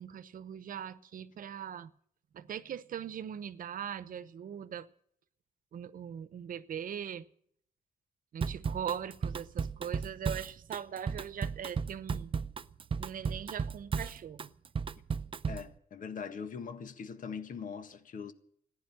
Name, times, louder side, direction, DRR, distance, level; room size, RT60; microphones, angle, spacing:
voice 1, 0.0-1.9 2.3-4.9 5.7-7.2 8.3-12.3 13.0-14.5, right 8 dB, 70° right, 0.9 m, -40 dB
Drum kit / Drum, 8.4-15.7, right 5 dB, 35° right, 0.6 m, -35 dB
voice 2, 15.5-18.3, left 6 dB, 65° left, 1.6 m, -41 dB
15.0 x 10.5 x 9.1 m
cardioid pair, 105°, 15 cm